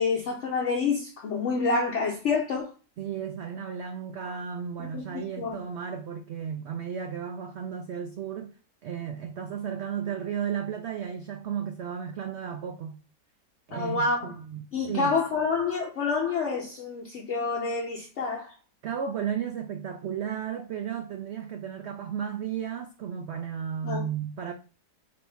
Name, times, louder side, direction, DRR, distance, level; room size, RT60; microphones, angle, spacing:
voice 1, 0.0-2.7 4.8-5.6 13.7-14.3 14.7-18.5 23.8-24.0, left 4 dB, 60° left, 0.9 m, -28 dB
voice 2, 3.0-8.5 8.8-13.0 13.7-15.2 18.8-24.5, right 8 dB, 85° right, 0.6 m, -34 dB
3.4 x 2.6 x 4.4 m
omnidirectional pair, 1.7 m